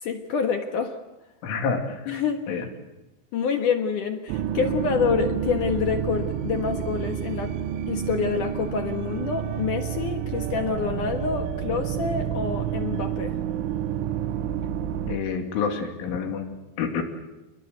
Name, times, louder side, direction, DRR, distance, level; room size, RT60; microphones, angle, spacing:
voice 1, 0.0-1.0 2.1-2.5 3.3-7.6 7.9-13.4, left 6 dB, 65° left, 6 dB, 2.2 m, -27 dB
voice 2, 1.4-2.1 2.5-2.7 15.1-16.5 16.8-17.0, left 5 dB, 80° left, 4 dB, 5.1 m, -28 dB
sound 1, 4.3-15.2, right 9 dB, 85° right, 3.6 m, -29 dB
29.0 x 21.5 x 8.1 m, 1.0 s
omnidirectional pair, 5.5 m